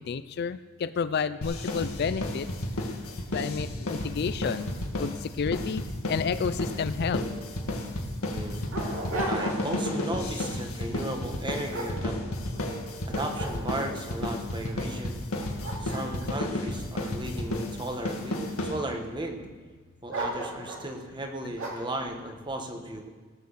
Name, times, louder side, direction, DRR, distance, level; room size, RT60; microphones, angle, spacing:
voice 1, 0.0-2.5 3.3-4.7 5.0-5.8 6.1-7.2, left 6 dB, 50° left, 13 dB, 0.3 m, -30 dB
sound 1, 1.4-19.2, left 1 dB, 90° left, 1.9 m, -32 dB
Dog, 7.5-7.6 8.2-9.9 10.3-10.6 11.2-12.7 13.1-14.0 14.6-14.7 15.2-17.5 18.2-18.8 20.1-20.9 21.6-22.0, right 2 dB, 65° right, 2.7 m, -36 dB
voice 2, 8.3-8.7 9.3-12.2 13.1-15.2 15.8-19.4 20.0-23.1, right 1 dB, 20° right, 4 dB, 1.3 m, -35 dB
18.0 x 6.8 x 6.7 m, 1.4 s
head